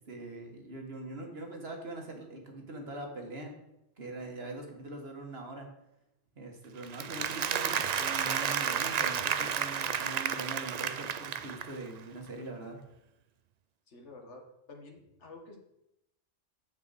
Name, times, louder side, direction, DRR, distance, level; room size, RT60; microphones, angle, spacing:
voice 1, 0.0-3.5 4.0-5.7 6.3-12.8, right 2 dB, 55° right, 2 dB, 1.6 m, -42 dB
Applause, 6.8-11.9, right 8 dB, 90° right, 0.3 m, -32 dB
voice 2, 13.9-15.6, left 2 dB, 65° left, 2 dB, 1.8 m, -50 dB
9.1 x 7.4 x 4.1 m, 0.86 s
omnidirectional pair, 1.3 m